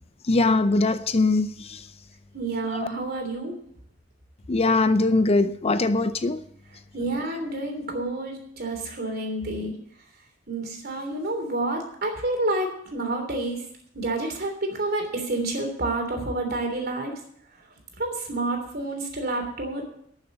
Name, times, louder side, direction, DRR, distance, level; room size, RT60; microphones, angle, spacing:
voice 1, 0.3-1.8 2.8-2.9 4.5-6.4, left 3 dB, 35° left, 0.5 m, -21 dB
voice 2, 2.3-3.6 6.9-9.7 10.5-13.6 13.9-17.1 18.0-19.8, right 2 dB, 55° right, 3.2 m, -29 dB
12.5 x 6.8 x 7.8 m
head